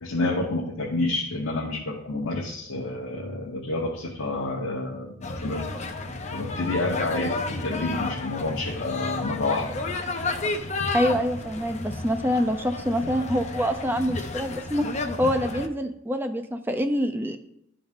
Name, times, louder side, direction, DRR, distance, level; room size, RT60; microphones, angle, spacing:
voice 1, 0.0-5.7 6.3-9.9, left 2 dB, 75° left, -1 dB, 0.9 m, -29 dB
sound 1, 5.2-15.7, left 3 dB, 35° left, 0.6 m, -32 dB
voice 2, 10.9-14.9 15.2-17.4, equal, 10° right, 7 dB, 0.4 m, -25 dB
12.0 x 3.9 x 3.6 m, 0.76 s
head